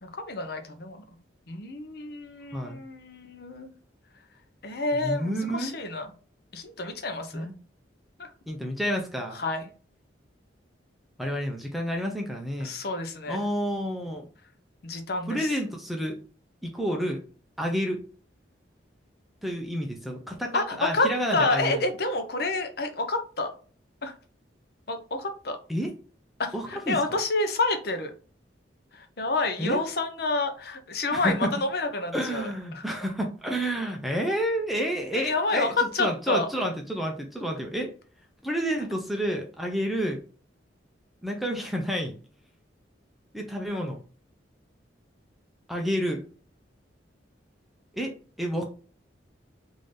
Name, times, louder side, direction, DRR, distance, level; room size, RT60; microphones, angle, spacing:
voice 1, 0.0-1.0 1.5-3.7 4.6-6.1 6.5-7.5 8.2-8.3 9.4-9.6 12.6-13.4 14.8-15.5 20.5-23.5 24.0-24.1 24.9-25.6 26.4-28.1 28.9-32.8 35.1-36.5, left 2 dB, 55° left, 6 dB, 0.7 m, -29 dB
voice 2, 5.0-5.8 7.3-7.5 8.5-9.4 11.2-12.7 13.3-14.3 15.3-16.2 16.6-17.2 17.6-18.0 19.4-21.8 25.7-25.9 26.5-27.0 29.6-29.8 31.1-31.5 32.1-37.9 38.4-40.2 41.2-42.2 43.3-44.0 45.7-46.2 47.9-48.6, equal, ahead, 1 dB, 0.5 m, -29 dB
3.7 x 2.6 x 3.3 m, 0.39 s
head